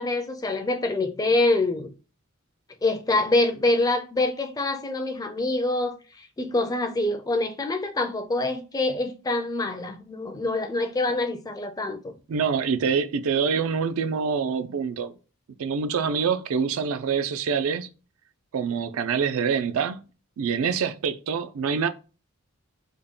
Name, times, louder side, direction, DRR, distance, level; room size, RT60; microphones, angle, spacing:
voice 1, 0.0-1.9 2.8-12.1, left 2 dB, 15° left, 0.4 m, -25 dB
voice 2, 12.3-15.1 15.6-17.9 18.5-20.0 20.4-21.9, right 6 dB, 70° right, 0.4 m, -25 dB
3.5 x 2.1 x 3.6 m
head